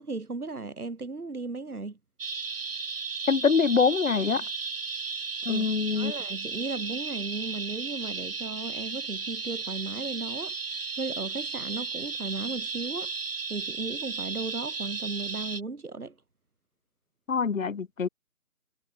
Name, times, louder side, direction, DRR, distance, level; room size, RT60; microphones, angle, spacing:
voice 1, 0.0-2.0 5.5-5.7 5.9-13.1 13.5-16.2, right 3 dB, 80° right, 4.6 m, -36 dB
sound 1, 2.2-15.6, right 4 dB, 40° right, 5.0 m, -34 dB
voice 2, 3.3-4.4 5.5-6.1 17.3-18.1, left 5 dB, 60° left, 0.9 m, -24 dB
figure-of-eight pair, 170°, 44 cm